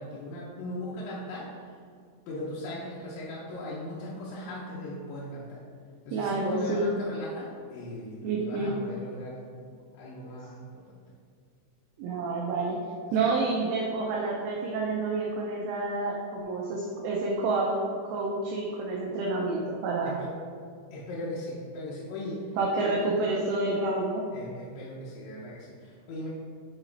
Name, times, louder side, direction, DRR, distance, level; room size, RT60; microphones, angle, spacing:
voice 1, 0.0-1.5 2.3-5.6 6.1-9.6 9.9-11.0 13.1-13.2 20.0-20.3 20.9-22.4 22.8-23.2 24.3-26.3, left 1 dB, 75° left, -7 dB, 3.1 m, -38 dB
voice 2, 6.1-6.9 8.2-8.8 12.0-12.8 13.1-20.2 22.6-24.2, right 3 dB, 80° right, -2 dB, 2.5 m, -29 dB
8.2 x 4.1 x 3.9 m, 2.2 s
omnidirectional pair, 5.5 m